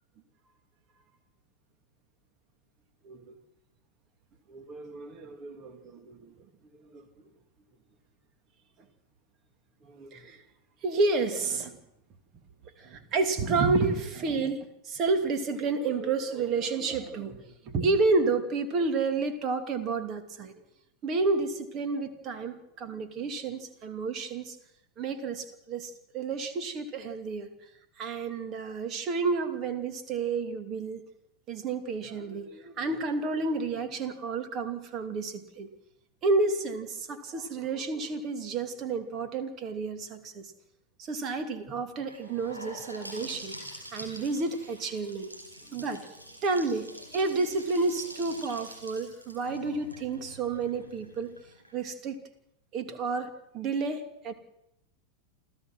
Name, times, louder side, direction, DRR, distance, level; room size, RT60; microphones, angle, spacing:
voice 1, 4.5-6.3 6.9-7.0 9.9-10.4 10.8-11.8 12.8-20.5 21.0-24.6 25.0-27.5 28.0-31.0 31.5-35.7 36.2-40.5 41.0-43.5 43.9-45.3 45.7-46.0 46.4-51.3 51.7-52.2 52.7-54.3, right 3 dB, 35° right, 8 dB, 2.8 m, -30 dB
Gurgling / Sink (filling or washing) / Bathtub (filling or washing), 42.1-51.9, equal, 90° right, 5.2 m, -46 dB
28.0 x 15.0 x 6.3 m, 0.81 s
figure-of-eight pair, 90°, 0 cm